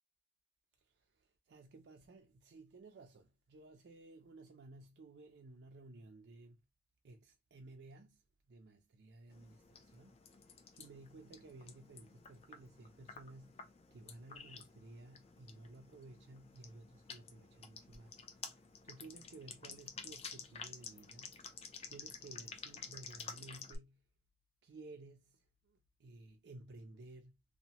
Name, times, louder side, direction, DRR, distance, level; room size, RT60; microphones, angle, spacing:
voice 1, 0.8-6.6 7.0-21.4 21.9-24.1 24.6-27.4, right 2 dB, 75° right, 0.4 m, -56 dB
sound 1, 9.3-23.8, left 5 dB, 35° left, 0.4 m, -52 dB
2.8 x 2.1 x 2.8 m
head